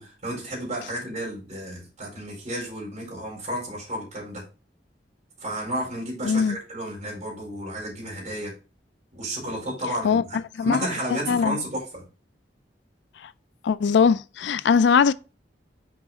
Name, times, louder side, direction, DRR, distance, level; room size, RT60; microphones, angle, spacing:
voice 1, 0.0-4.4 5.4-8.5 9.1-12.0, right 1 dB, 40° right, 4.3 m, -32 dB
voice 2, 6.2-6.6 10.0-10.8 11.3-11.6 13.2-13.3 13.6-15.1, left 6 dB, 75° left, 0.4 m, -21 dB
6.0 x 5.0 x 4.1 m
head